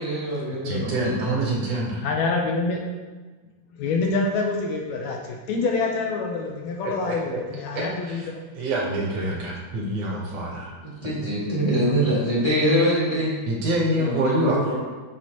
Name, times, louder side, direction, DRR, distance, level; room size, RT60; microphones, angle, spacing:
voice 1, 0.0-1.3 11.0-13.3 13.9-14.7, equal, 20° left, -9 dB, 1.5 m, -24 dB
voice 2, 0.6-2.1 6.8-8.3 8.5-10.7 13.5-14.6, right 1 dB, 65° right, -2 dB, 1.9 m, -26 dB
voice 3, 2.0-2.8 3.7-8.4, left 3 dB, 75° left, 1 dB, 1.8 m, -26 dB
7.6 x 6.0 x 2.9 m, 1.3 s
omnidirectional pair, 3.4 m